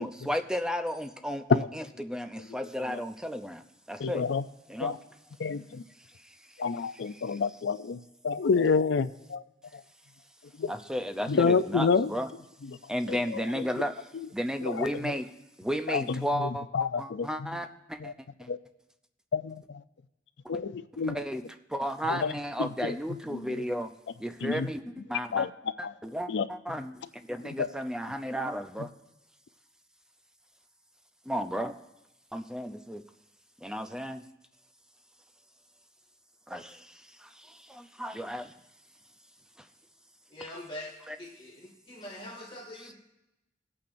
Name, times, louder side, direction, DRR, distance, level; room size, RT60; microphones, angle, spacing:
voice 1, 0.0-4.3 4.7-5.0 6.2-6.3 7.3-7.4 10.7-12.3 12.9-13.9 14.3-15.3 15.6-18.5 21.0-21.4 21.7-23.9 24.2-25.5 25.8-28.9 31.3-31.8 32.3-33.0 33.6-34.2 36.5-38.5 40.4-40.5 41.1-41.2 42.8-42.9, equal, 5° right, 8 dB, 0.5 m, -34 dB
voice 2, 4.0-4.4 4.8-5.0 5.4-5.8 6.6-9.4 9.7-9.8 10.6-10.7 11.3-12.1 12.7-12.8 13.1-13.7 14.6-15.1 15.9-17.6 18.0-18.1 18.5-18.6 19.3-19.8 20.5-21.2 22.1-22.3 22.6-22.9 23.3-23.6 24.4-24.7 25.3-25.5 25.8-25.9 26.3-26.5 27.4-27.7, left 5 dB, 70° left, 13 dB, 0.4 m, -29 dB
voice 3, 40.3-40.9 41.2-41.5 41.9-42.9, left 1 dB, 30° left, -2 dB, 2.2 m, -42 dB
19.5 x 8.5 x 2.6 m, 0.90 s
head